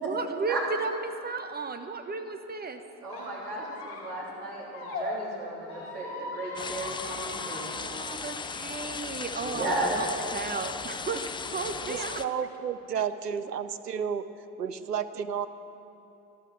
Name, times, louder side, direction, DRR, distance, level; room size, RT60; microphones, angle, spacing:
voice 1, 0.0-2.8 7.0-10.1 10.3-12.2, right 4 dB, 20° right, 6 dB, 1.2 m, -35 dB
voice 2, 3.0-7.8 9.4-10.0, right 1 dB, 75° right, -4 dB, 3.5 m, -34 dB
Squeak, 3.1-5.1 5.6-7.7, left 3 dB, 55° left, 3.9 m, -40 dB
sound 1, 6.6-12.3, left 5 dB, 10° left, 0.4 m, -37 dB
voice 3, 11.8-14.3 14.6-15.5, right 7 dB, 90° right, 12 dB, 0.6 m, -32 dB
13.0 x 13.0 x 7.5 m, 3.0 s
figure-of-eight pair, 55°, 47 cm